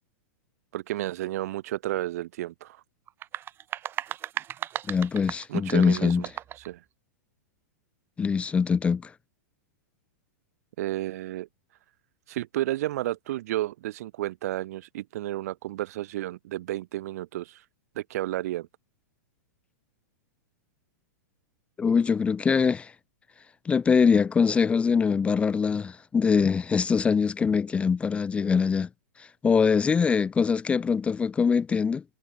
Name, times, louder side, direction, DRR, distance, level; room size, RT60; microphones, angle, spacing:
voice 1, 0.7-2.8 5.5-6.3 6.7-6.8 10.8-11.5 12.3-17.6 18.0-18.7, right 15 dB, 60° right, 1.7 m, -32 dB
sound 1, 3.1-6.7, right 11 dB, 25° right, 1.5 m, -36 dB
voice 2, 4.9-6.2 8.2-9.1 21.8-22.9 23.6-28.9 29.2-32.0, left 6 dB, 10° left, 0.7 m, -23 dB
hypercardioid pair, 140°, 9 cm